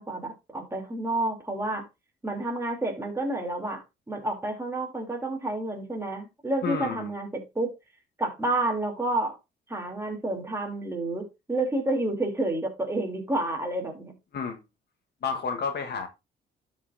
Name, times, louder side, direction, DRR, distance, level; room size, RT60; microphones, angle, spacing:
voice 1, 0.0-1.8 2.2-7.7 8.2-9.4 9.7-14.1, right 2 dB, 15° right, 3.2 m, -29 dB
voice 2, 6.6-7.1 14.3-14.6 15.2-16.1, left 5 dB, 55° left, 1.5 m, -30 dB
13.0 x 5.5 x 2.7 m
cardioid pair, 90°, 20 cm